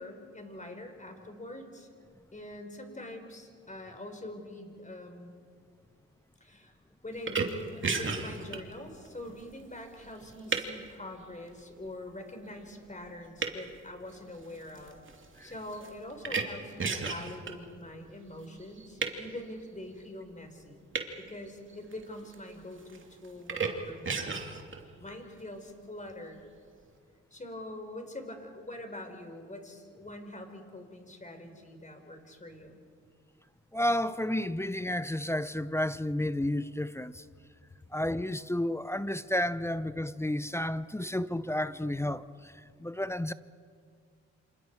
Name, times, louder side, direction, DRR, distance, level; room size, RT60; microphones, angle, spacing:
voice 1, 0.0-1.9 2.3-5.3 6.4-6.7 7.0-15.0 15.4-20.8 21.2-24.5 25.0-26.4 27.3-32.8, left 1 dB, 25° left, 4.5 m, -44 dB
sound 1, 7.2-10.9 11.5-11.9 12.5-12.8 13.0-17.5 18.4-19.2 20.9-21.1 21.5-22.5 22.8-23.7 24.0-24.8, right 4 dB, 40° right, 2.7 m, -33 dB
voice 2, 33.7-37.2 37.9-42.5 42.8-43.3, left 1 dB, 10° left, 0.7 m, -31 dB
28.0 x 26.5 x 4.7 m
supercardioid pair, 60°, 30 cm